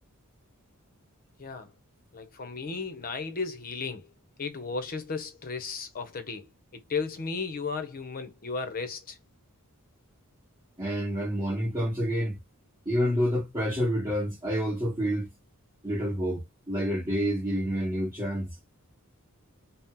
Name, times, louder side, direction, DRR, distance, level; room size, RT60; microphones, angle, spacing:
voice 1, 1.4-1.7 2.1-4.1 4.4-9.2, left 4 dB, 40° left, 0.6 m, -35 dB
voice 2, 10.8-12.4 12.8-15.3 15.8-18.5, equal, 20° right, 1.2 m, -28 dB
2.7 x 2.1 x 3.5 m
head